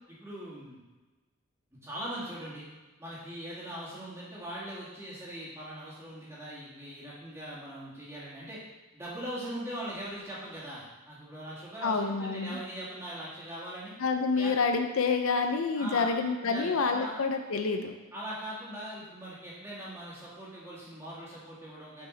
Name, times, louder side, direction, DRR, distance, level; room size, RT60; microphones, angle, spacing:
voice 1, 0.1-0.8 1.8-2.7 3.0-8.6 8.9-13.9 14.4-14.6 15.8-16.2 16.4-17.1 18.1-22.1, right 1 dB, 10° right, -9 dB, 2.1 m, -41 dB
voice 2, 11.8-12.6 14.0-17.9, left 4 dB, 70° left, 6 dB, 0.5 m, -28 dB
6.4 x 4.8 x 3.9 m, 1.2 s
head